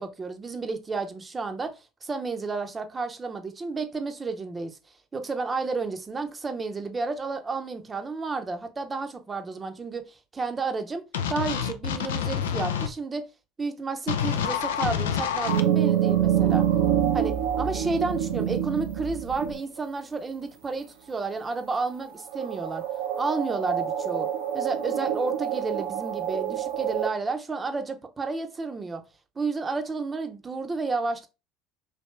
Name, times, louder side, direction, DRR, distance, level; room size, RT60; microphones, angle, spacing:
voice 1, 0.0-1.7 2.0-4.8 5.1-11.0 11.3-13.2 13.6-16.7 17.1-22.8 23.2-24.3 24.5-29.0 29.4-31.3, right 4 dB, 25° right, 0.7 m, -31 dB
sound 1, 11.1-12.9 14.1-15.6, left 8 dB, 85° left, 0.4 m, -27 dB
sound 2, 15.5-19.8 21.8-21.9 22.3-27.1, right 10 dB, 80° right, 0.6 m, -26 dB
3.2 x 2.8 x 3.1 m
hypercardioid pair, 80°, 0 cm